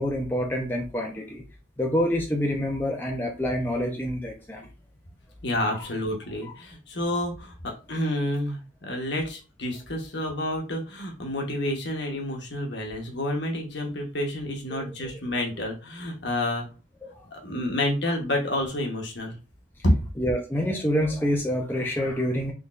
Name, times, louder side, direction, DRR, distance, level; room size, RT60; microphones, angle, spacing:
voice 1, 0.0-1.4 1.8-4.7 14.7-14.9 17.0-17.3 20.2-22.5, equal, 10° left, 0 dB, 0.5 m, -27 dB
voice 2, 5.4-16.7 17.3-19.4 19.8-20.0, left 1 dB, 60° left, 1 dB, 1.1 m, -29 dB
3.9 x 3.4 x 2.5 m, 0.32 s
head